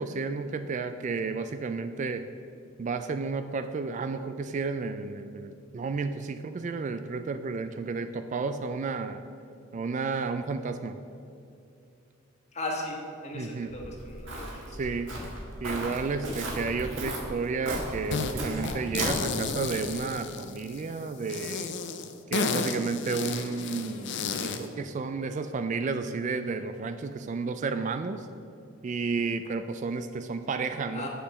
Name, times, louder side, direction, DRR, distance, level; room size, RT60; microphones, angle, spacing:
voice 1, 0.0-2.2 2.8-9.2 9.7-11.0 13.3-13.7 14.8-15.1 15.6-21.8 22.3-28.3 28.8-31.1, right 4 dB, 35° right, 10 dB, 0.3 m, -32 dB
voice 2, 12.5-14.8 30.9-31.1, left 1 dB, 35° left, 0 dB, 1.4 m, -37 dB
Walk footsteps, 13.7-20.0, right 1 dB, 65° right, 1.8 m, -36 dB
sound 1, 18.1-18.3 18.6-20.8 21.3-24.7, left 5 dB, 60° left, 0.6 m, -32 dB
7.5 x 6.9 x 5.9 m, 2.6 s
head